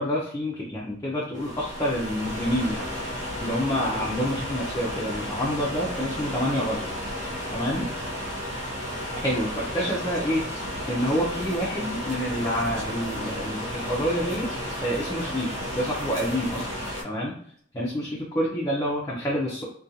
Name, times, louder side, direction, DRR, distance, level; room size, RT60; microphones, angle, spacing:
voice 1, 0.0-6.8 7.5-7.8 9.2-10.4 10.9-14.5 14.8-15.5 15.8-16.7 17.0-17.3 17.7-19.6, equal, 20° left, -5 dB, 0.4 m, -28 dB
sound 1, 1.3-17.0, equal, 80° right, 0.6 m, -33 dB
2.4 x 2.2 x 2.7 m, 0.62 s
head